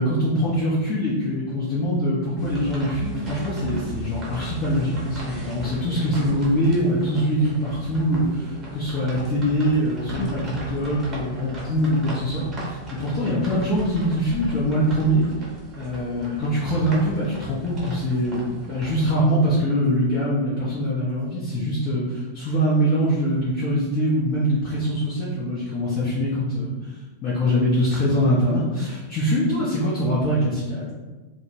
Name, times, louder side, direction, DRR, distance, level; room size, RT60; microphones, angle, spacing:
voice 1, 0.0-15.2 15.8-30.9, equal, 35° left, -7 dB, 0.6 m, -23 dB
sound 1, 2.4-19.1, right 2 dB, 25° right, 0.8 m, -36 dB
2.2 x 2.2 x 3.0 m, 1.2 s
figure-of-eight pair, 90°, 0 cm